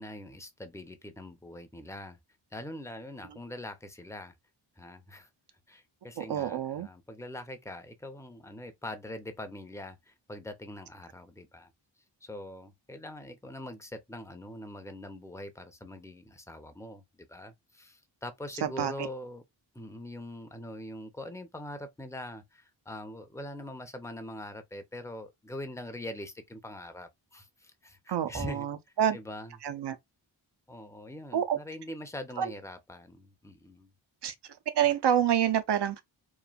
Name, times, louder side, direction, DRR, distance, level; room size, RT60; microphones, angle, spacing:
voice 1, 0.0-2.2 2.5-4.3 4.8-5.3 5.7-11.7 12.2-19.4 19.7-28.7 29.1-29.6 30.7-33.9, left 1 dB, 5° left, 0.6 m, -43 dB
voice 2, 6.2-6.9 18.6-18.9 28.1-29.2 29.6-30.0 31.3-31.6 32.4-32.5 34.2-34.3 34.7-36.0, right 9 dB, 55° right, 0.6 m, -27 dB
3.1 x 2.1 x 2.4 m
cardioid pair, 45°, 49 cm